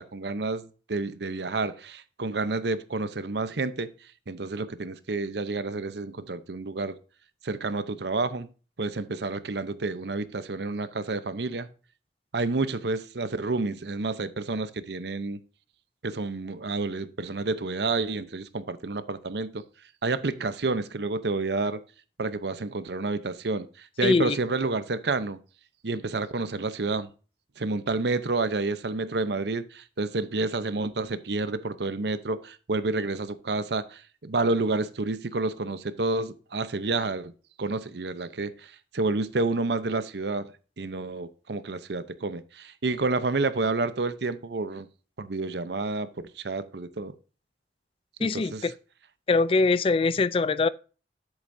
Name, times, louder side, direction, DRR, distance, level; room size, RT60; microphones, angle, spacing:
voice 1, 0.0-3.9 4.3-7.0 7.4-8.5 8.8-11.7 12.3-15.4 16.0-19.6 20.0-21.8 22.2-25.4 25.8-27.1 27.6-37.3 37.6-40.5 40.8-44.9 45.2-47.1 48.2-48.6, right 3 dB, 75° right, 0.8 m, -29 dB
voice 2, 24.0-24.4 48.2-48.7 49.3-50.7, left 3 dB, 30° left, 0.3 m, -23 dB
10.5 x 8.1 x 2.7 m
head